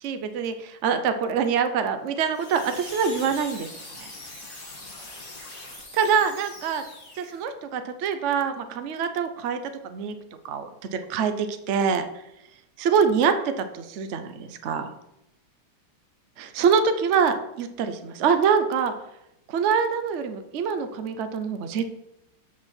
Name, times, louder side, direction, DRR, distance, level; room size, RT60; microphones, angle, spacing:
voice 1, 0.0-3.7 4.0-4.1 5.9-6.8 7.2-9.6 9.8-10.1 10.4-12.1 12.8-14.9 16.5-18.9 19.5-21.9, right 6 dB, 80° right, 9 dB, 0.6 m, -25 dB
sound 1, 2.3-7.5, left 2 dB, 50° left, 2.6 m, -42 dB
7.4 x 6.2 x 4.3 m, 0.85 s
omnidirectional pair, 2.2 m